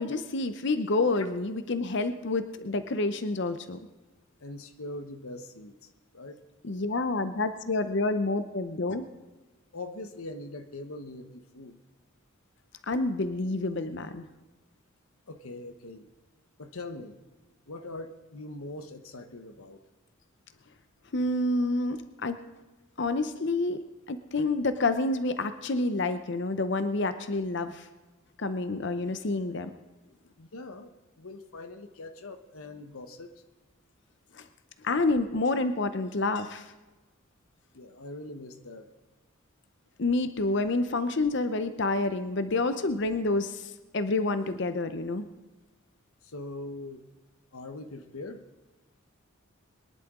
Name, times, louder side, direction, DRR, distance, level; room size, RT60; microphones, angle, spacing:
voice 1, 0.0-3.8 6.6-9.1 12.8-14.3 21.1-22.4 23.0-23.8 24.1-27.9 28.4-29.7 34.3-34.4 34.8-36.7 40.0-45.3, left 2 dB, 55° left, 10 dB, 0.7 m, -28 dB
voice 2, 4.4-6.4 9.7-11.8 15.3-16.1 16.6-17.2 17.7-19.8 30.4-33.3 37.7-38.9 46.2-47.0 47.5-48.4, left 2 dB, 85° left, 8 dB, 1.1 m, -42 dB
22.0 x 11.0 x 3.7 m, 1.1 s
head